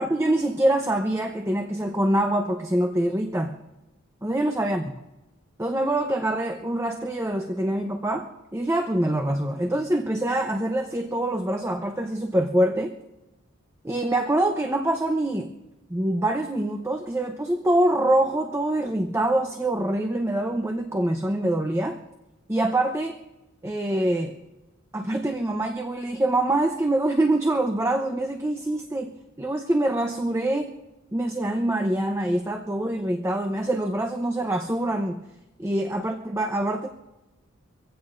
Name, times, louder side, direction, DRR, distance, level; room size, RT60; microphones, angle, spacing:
voice 1, 0.0-3.5 4.2-4.8 5.6-12.9 13.8-15.5 15.9-22.0 22.5-23.1 23.6-24.3 24.9-30.7 31.1-35.2 35.6-36.9, right 1 dB, 15° right, 4 dB, 0.8 m, -25 dB
24.5 x 16.0 x 2.6 m, 0.98 s
head